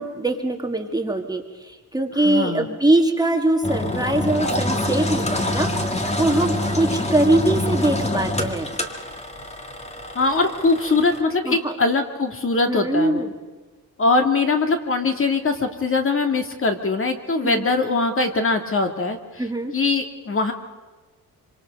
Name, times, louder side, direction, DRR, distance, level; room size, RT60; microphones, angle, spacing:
voice 1, 0.0-5.7 6.2-8.7 11.5-11.8 12.7-13.3 17.4-17.6 19.4-19.7, right 1 dB, 10° right, 3 dB, 1.8 m, -22 dB
voice 2, 2.2-2.7 10.1-13.2 14.0-19.2 19.7-20.5, left 3 dB, 35° left, 5 dB, 2.2 m, -21 dB
Engine, 3.6-11.2, left 1 dB, 15° left, 1.9 m, -26 dB
26.0 x 26.0 x 5.4 m, 1.3 s
wide cardioid pair, 150°, 38 cm